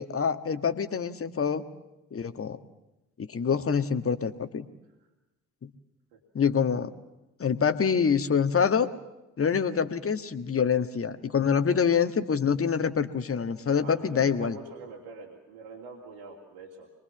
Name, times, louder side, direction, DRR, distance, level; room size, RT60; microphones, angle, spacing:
voice 1, 0.0-1.6 2.1-2.6 3.2-4.7 5.6-5.7 6.3-6.9 7.4-8.9 9.4-14.6, left 6 dB, 35° left, 9 dB, 1.7 m, -26 dB
voice 2, 13.8-16.9, right 3 dB, 70° right, -1 dB, 3.0 m, -44 dB
26.5 x 22.0 x 7.2 m, 1.0 s
figure-of-eight pair, 40°, 40 cm